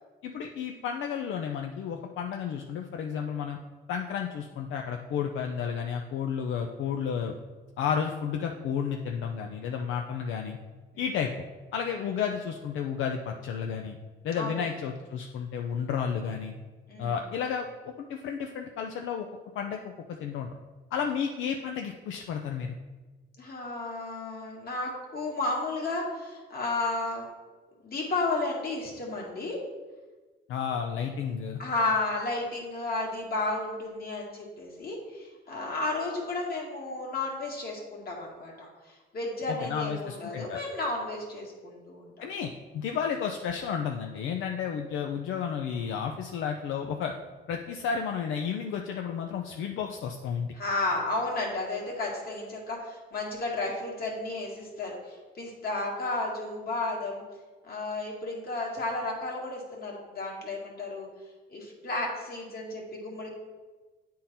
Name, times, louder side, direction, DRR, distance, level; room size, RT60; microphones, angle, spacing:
voice 1, 0.2-3.6 3.9-7.3 7.8-10.6 11.0-11.3 11.7-14.0 14.2-16.5 17.0-19.3 19.5-20.5 20.9-22.7 30.5-31.6 39.5-40.6 42.2-47.1 47.5-50.5, left 7 dB, 80° left, 3 dB, 0.5 m, -32 dB
voice 2, 14.4-14.7 16.9-17.2 23.4-27.3 27.8-29.6 31.6-42.3 50.6-57.2 57.6-61.1 61.5-63.3, left 2 dB, 50° left, -2 dB, 1.9 m, -33 dB
9.0 x 3.7 x 4.3 m, 1.3 s
cardioid pair, 90°, 20 cm